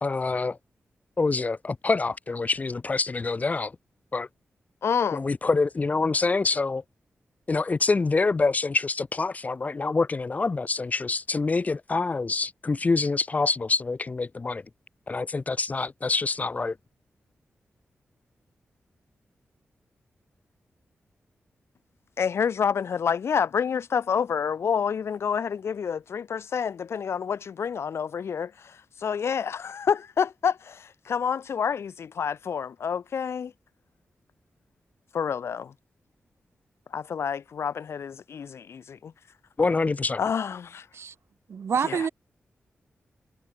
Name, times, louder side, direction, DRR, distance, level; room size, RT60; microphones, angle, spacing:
voice 1, 0.0-0.6 1.2-3.7 4.1-4.3 5.1-6.8 7.5-14.6 15.1-16.7 39.6-40.2, left 3 dB, 35° left, 0.9 m, -26 dB
voice 2, 4.8-5.2 22.2-33.5 35.1-35.7 36.9-39.1 40.2-40.9 41.8-42.1, left 7 dB, 75° left, 1.3 m, -28 dB
voice 3, 41.5-42.1, right 6 dB, 75° right, 5.1 m, -27 dB
wide cardioid pair, 105°, 4 cm